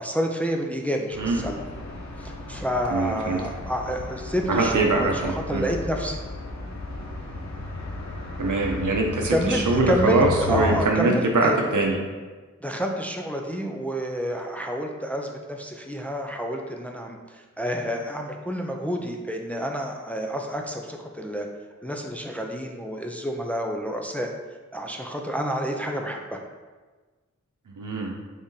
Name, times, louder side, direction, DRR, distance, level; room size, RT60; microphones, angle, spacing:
voice 1, 0.0-1.6 2.2-6.2 9.3-11.6 12.6-21.5 21.8-24.3 24.7-26.4, equal, 5° left, 2 dB, 0.4 m, -29 dB
sound 1, 1.1-10.8, left 3 dB, 60° left, 0.6 m, -34 dB
voice 2, 2.9-3.4 4.5-5.6 8.4-12.0 27.7-28.1, right 3 dB, 80° right, 1 dB, 0.6 m, -23 dB
3.7 x 3.5 x 2.7 m, 1.3 s
wide cardioid pair, 45°, 30 cm